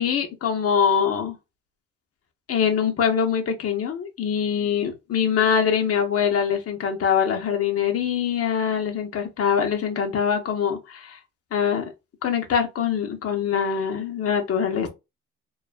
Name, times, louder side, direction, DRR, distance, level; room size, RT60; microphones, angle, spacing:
voice 1, 0.0-1.4 2.5-11.2 11.5-11.9 12.2-14.9, left 7 dB, 50° left, 0.7 m, -23 dB
2.3 x 2.3 x 2.4 m
cardioid pair, 90°, 30 cm